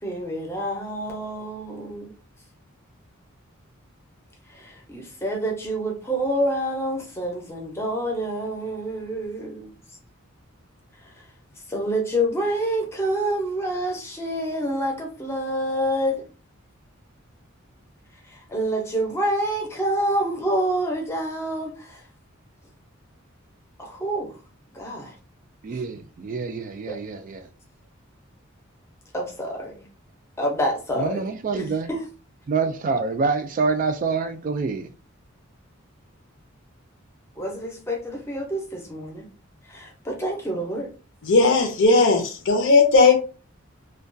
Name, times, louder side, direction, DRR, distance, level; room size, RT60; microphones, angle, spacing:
voice 1, 0.0-2.1 4.5-9.7 11.7-16.2 18.3-22.0 23.8-24.4 24.7-25.2 25.7-25.8 26.9-27.0 29.1-29.8 30.4-32.1 37.4-39.3 39.7-40.9, right 1 dB, 15° left, 0.6 m, -27 dB
voice 2, 25.6-27.5 31.0-31.9 32.5-34.9, right 4 dB, 40° right, 0.3 m, -26 dB
voice 3, 41.3-43.2, left 3 dB, 60° left, 0.6 m, -17 dB
2.3 x 2.2 x 2.5 m
head